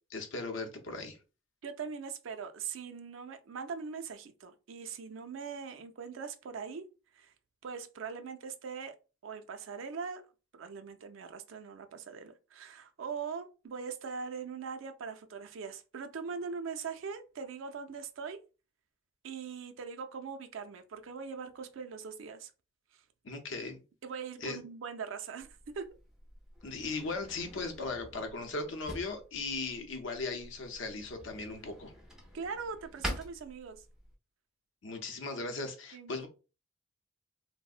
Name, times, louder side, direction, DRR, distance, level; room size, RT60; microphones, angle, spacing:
voice 1, 0.1-1.2 23.2-23.8 24.4-24.6 26.6-31.9 34.8-36.3, left 3 dB, 60° left, 0.6 m, -38 dB
voice 2, 1.6-6.9 7.1-7.3 7.6-9.0 9.2-10.2 10.5-18.4 19.2-22.5 22.9-23.0 24.0-26.0 32.3-33.9 35.9-36.3, right 5 dB, 65° right, 0.4 m, -41 dB
Drawer open or close, 25.4-34.1, equal, ahead, 0.4 m, -46 dB
3.4 x 2.0 x 2.3 m
head